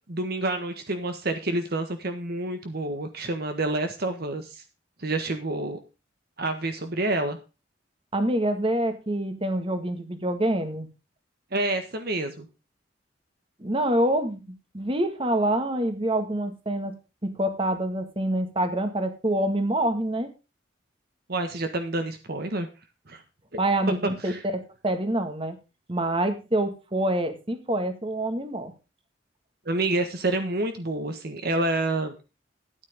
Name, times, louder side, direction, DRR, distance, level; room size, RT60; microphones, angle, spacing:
voice 1, 0.1-4.6 5.0-5.8 6.4-7.4 11.5-12.5 21.3-22.7 23.1-23.2 24.2-24.4 29.6-32.1, right 2 dB, 55° right, 7 dB, 1.5 m, -28 dB
voice 2, 8.1-10.9 13.6-14.4 14.7-16.9 17.2-20.3 23.6-25.5 25.9-28.7, right 1 dB, 30° right, 7 dB, 1.8 m, -26 dB
13.0 x 9.7 x 3.6 m, 0.30 s
head